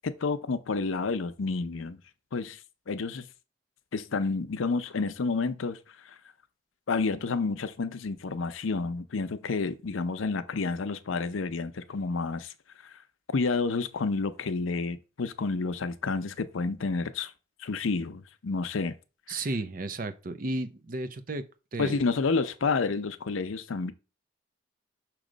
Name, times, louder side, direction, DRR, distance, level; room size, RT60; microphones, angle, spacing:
voice 1, 0.0-2.0 2.3-2.6 2.9-3.3 3.9-5.8 6.1-6.2 6.9-12.5 12.9-13.0 13.3-17.3 17.6-19.0 19.3-19.4 21.8-23.9, left 4 dB, 90° left, 0.6 m, -30 dB
voice 2, 19.3-21.5 21.7-22.0, right 2 dB, 45° right, 0.6 m, -33 dB
6.3 x 3.0 x 5.0 m
head